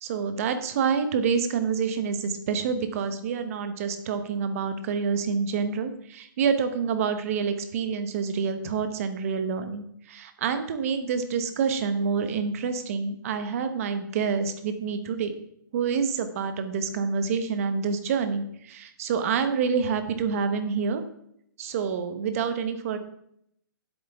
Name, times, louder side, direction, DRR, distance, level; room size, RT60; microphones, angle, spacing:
voice 1, 0.0-15.3 15.7-21.0 21.6-23.0, right 6 dB, 40° right, 9 dB, 1.1 m, -27 dB
10.0 x 8.2 x 3.6 m, 0.73 s
hypercardioid pair, 155°, 12 cm